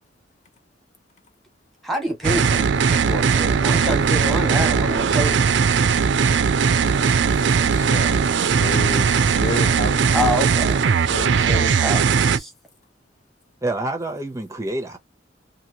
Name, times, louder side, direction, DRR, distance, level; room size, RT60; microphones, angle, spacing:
voice 1, 1.8-5.4 10.1-10.9 11.4-12.5, equal, ahead, 1.2 m, -26 dB
sound 1, 2.2-12.4, right 6 dB, 75° right, 0.5 m, -19 dB
voice 2, 7.7-8.2 8.6-10.2 11.0-11.8, left 2 dB, 40° left, 0.5 m, -31 dB
voice 3, 13.6-15.0, right 2 dB, 15° right, 0.7 m, -27 dB
2.9 x 2.7 x 2.8 m
head